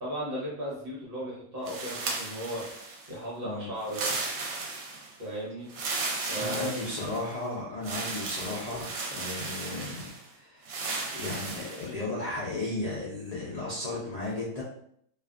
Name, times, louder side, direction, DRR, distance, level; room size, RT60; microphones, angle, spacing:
voice 1, 0.0-2.7 3.1-4.2 5.2-5.7 6.3-6.8, right 1 dB, 45° right, -5 dB, 1.1 m, -36 dB
sound 1, 1.7-3.2 3.8-5.2 5.7-7.4 7.8-10.2 10.7-11.9, right 3 dB, 80° right, 1.0 m, -35 dB
voice 2, 6.3-10.6 11.1-14.6, left 2 dB, 75° left, -6 dB, 0.3 m, -35 dB
2.5 x 2.4 x 2.3 m, 0.66 s
omnidirectional pair, 1.5 m